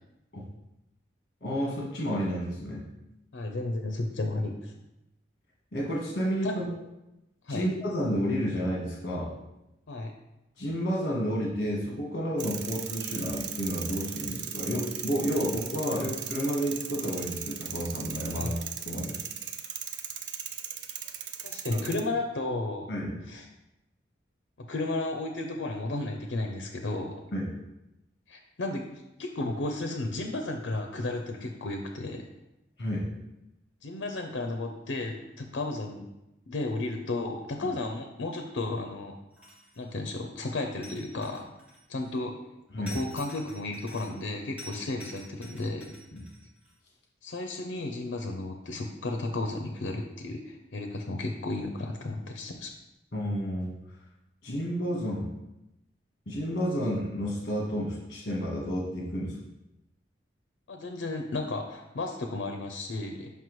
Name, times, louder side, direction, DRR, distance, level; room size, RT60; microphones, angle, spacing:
voice 1, 1.4-2.9 5.7-6.7 7.5-9.3 10.6-18.6 18.8-19.1 21.7-21.8 22.9-23.1 27.3-27.5 32.8-33.1 42.7-43.0 46.1-46.2 53.1-53.7 54.4-55.3 56.3-59.4, equal, 50° left, -3 dB, 1.2 m, -30 dB
voice 2, 3.3-4.7 6.4-6.5 7.5-7.7 9.9-10.1 18.3-18.5 21.4-22.9 23.3-23.5 24.6-27.2 28.3-32.2 33.8-36.0 36.5-39.2 39.8-41.5 41.9-42.3 42.8-45.9 47.2-52.7 60.7-63.3, left 2 dB, 75° left, 4 dB, 0.5 m, -33 dB
sound 1, 12.4-22.0, right 8 dB, 65° right, 0.4 m, -38 dB
sound 2, 39.3-39.9 40.8-42.1 42.9-44.3 44.6-46.7, equal, 10° right, 1.5 m, -47 dB
5.9 x 5.4 x 3.1 m, 0.93 s
head